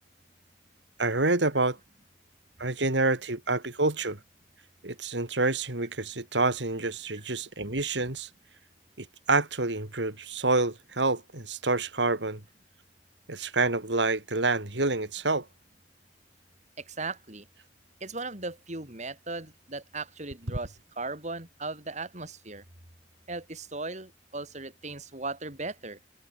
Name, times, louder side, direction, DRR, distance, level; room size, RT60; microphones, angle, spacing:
voice 1, 1.0-1.8 2.6-4.2 4.8-8.3 9.0-12.4 13.3-15.5, right 3 dB, 90° right, 3.2 m, -27 dB
voice 2, 16.8-17.5 18.0-22.6 23.3-26.0, right 3 dB, 40° right, 6.0 m, -37 dB
head